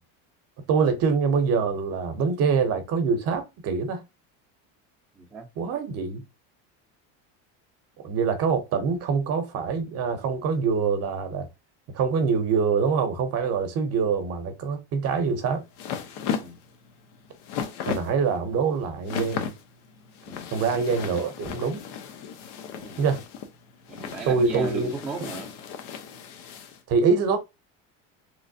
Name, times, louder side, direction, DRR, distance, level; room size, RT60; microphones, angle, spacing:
voice 1, 0.7-4.0 5.6-6.2 8.0-11.5 11.9-15.6 17.8-19.5 20.5-21.8 23.0-23.2 24.3-24.9 26.9-27.4, right 5 dB, 40° right, 0.7 m, -24 dB
voice 2, 5.2-5.5 16.4-16.6 20.3-20.5 22.7-23.0 23.9-25.5, right 4 dB, 5° right, 0.4 m, -36 dB
sound 1, 15.1-26.8, left 7 dB, 85° left, 0.8 m, -36 dB
3.1 x 3.1 x 2.6 m
cardioid pair, 170°, 37 cm